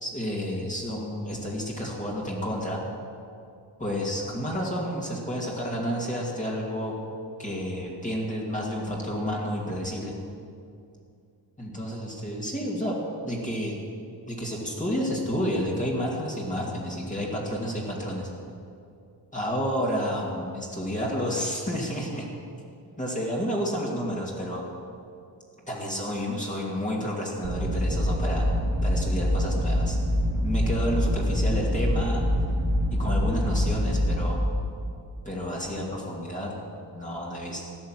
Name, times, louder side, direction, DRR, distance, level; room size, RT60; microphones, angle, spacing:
voice 1, 0.0-2.8 3.8-6.9 7.4-10.1 11.6-13.0 13.2-13.8 14.3-18.3 19.3-22.3 23.0-24.6 25.7-28.5 28.8-30.0 30.4-32.2 33.0-34.4 35.2-36.5 36.9-37.6, equal, 15° left, -4 dB, 2.3 m, -30 dB
sound 1, 27.4-34.3, equal, 85° right, 2.5 m, -25 dB
14.5 x 10.5 x 7.5 m, 2.5 s
wide cardioid pair, 125°, 44 cm